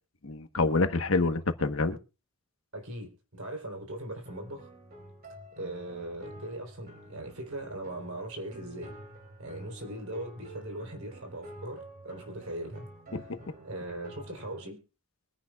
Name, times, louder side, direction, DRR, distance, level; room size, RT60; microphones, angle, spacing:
voice 1, 0.2-2.0 13.1-13.4, left 3 dB, 65° left, 1.2 m, -27 dB
voice 2, 2.7-4.7 5.5-8.9 9.4-13.3 13.6-14.8, right 1 dB, 75° right, 3.7 m, -40 dB
sound 1, 4.2-14.7, right 1 dB, 45° right, 4.1 m, -48 dB
23.5 x 10.0 x 2.4 m
head